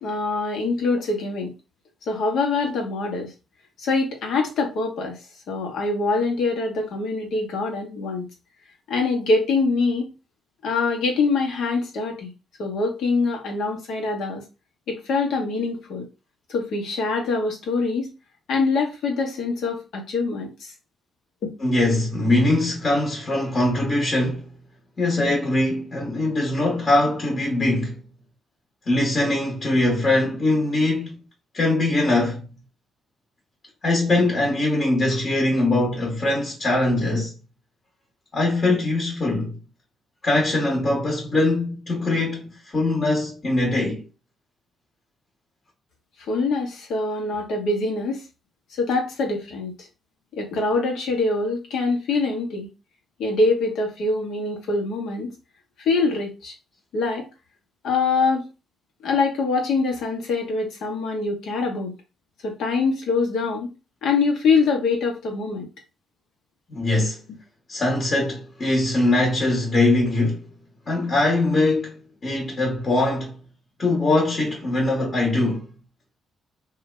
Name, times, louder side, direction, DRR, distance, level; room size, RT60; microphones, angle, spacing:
voice 1, 0.0-1.5 2.1-3.3 3.8-5.2 5.5-8.3 8.9-10.1 10.6-12.3 12.6-14.4 14.9-16.0 16.5-18.1 18.5-20.7 46.3-48.2 48.8-49.7 50.3-52.7 53.2-55.3 55.8-56.5 56.9-57.3 57.8-58.5 59.0-61.9 62.4-63.7 64.0-65.7, left 3 dB, 75° left, 1.1 m, -24 dB
voice 2, 21.6-24.5 25.0-28.0 28.9-31.2 31.5-32.4 33.8-37.3 38.3-39.6 40.2-44.0 66.7-67.2 67.7-70.4 70.9-72.0 72.2-73.3 73.8-75.7, left 2 dB, 35° left, 1.1 m, -22 dB
2.8 x 2.4 x 3.1 m
cardioid pair, 90°, 0 cm